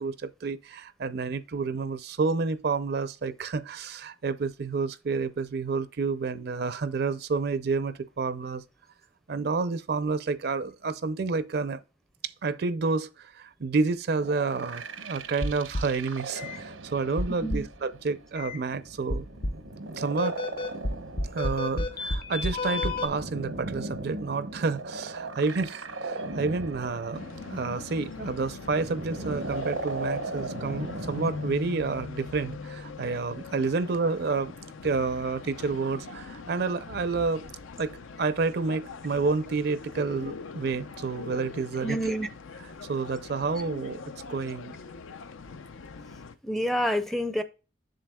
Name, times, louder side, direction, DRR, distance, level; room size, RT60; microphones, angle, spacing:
voice 1, 0.0-8.6 9.3-11.8 12.2-19.3 20.0-20.4 21.3-34.5 34.8-37.5 37.8-37.9 38.2-42.1 42.9-44.0 44.3-44.8, right 4 dB, 55° right, 0.5 m, -29 dB
sound 1, 14.2-31.5, right 2 dB, 90° right, 1.0 m, -38 dB
sound 2, 15.4-16.0 16.4-16.6 17.2-17.8 18.3-18.6 19.1-19.7 20.2-23.1, left 2 dB, 50° left, 0.7 m, -31 dB
sound 3, 27.1-46.3, left 4 dB, 85° left, 0.6 m, -42 dB
voice 2, 41.8-42.3 46.4-47.4, equal, ahead, 0.5 m, -28 dB
7.6 x 6.6 x 2.2 m
head